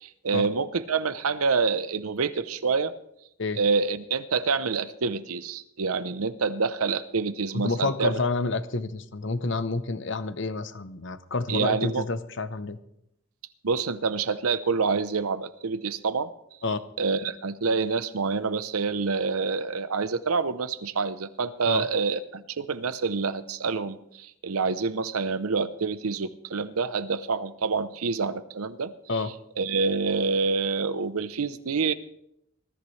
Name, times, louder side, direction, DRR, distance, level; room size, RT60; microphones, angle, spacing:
voice 1, 0.0-2.9 3.5-8.2 11.5-12.0 13.6-16.3 17.0-28.9 29.6-31.9, right 4 dB, 90° right, 14 dB, 0.8 m, -27 dB
voice 2, 7.5-12.8 16.6-16.8 21.7-21.9 29.1-29.3, left 3 dB, 55° left, 12 dB, 0.8 m, -29 dB
20.0 x 13.5 x 3.3 m, 0.77 s
head